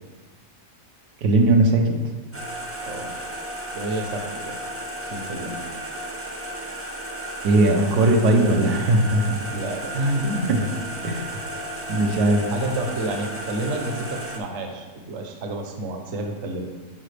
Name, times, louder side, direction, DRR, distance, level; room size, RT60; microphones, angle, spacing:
voice 1, 1.2-1.9 7.4-9.4 10.5-10.6 11.0-11.3 11.9-12.4, right 2 dB, 75° right, 3 dB, 1.3 m, -18 dB
sound 1, 2.3-14.4, right 1 dB, 20° right, 0.3 m, -34 dB
voice 2, 3.7-4.6 5.0-5.5 9.5-10.7 12.5-16.7, right 1 dB, 55° right, 3 dB, 1.0 m, -29 dB
9.9 x 4.3 x 3.3 m, 1.2 s
omnidirectional pair, 1.7 m